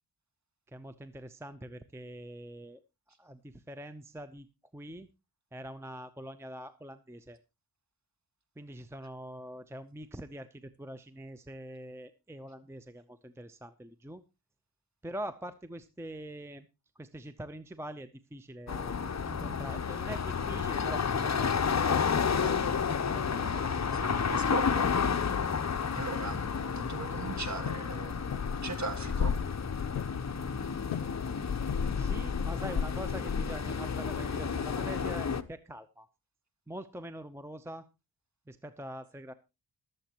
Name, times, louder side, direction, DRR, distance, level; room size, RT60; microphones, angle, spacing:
voice 1, 0.7-2.8 3.2-4.5 4.7-5.1 5.5-7.4 8.6-14.2 15.0-16.7 17.0-19.0 19.2-24.5 31.9-36.1 36.7-37.9 38.5-39.3, right 1 dB, 5° right, 0.7 m, -44 dB
sound 1, 18.7-35.4, left 6 dB, 35° left, 0.8 m, -31 dB
voice 2, 23.9-24.9 25.9-26.4 26.7-29.3, right 3 dB, 35° right, 1.8 m, -38 dB
sound 2, 27.7-27.9 28.3-28.6 29.2-29.5 29.7-30.2 30.9-31.2 31.7-32.0 32.6-33.1, left 10 dB, 90° left, 0.6 m, -39 dB
21.0 x 7.9 x 3.0 m
cardioid pair, 70°, 46 cm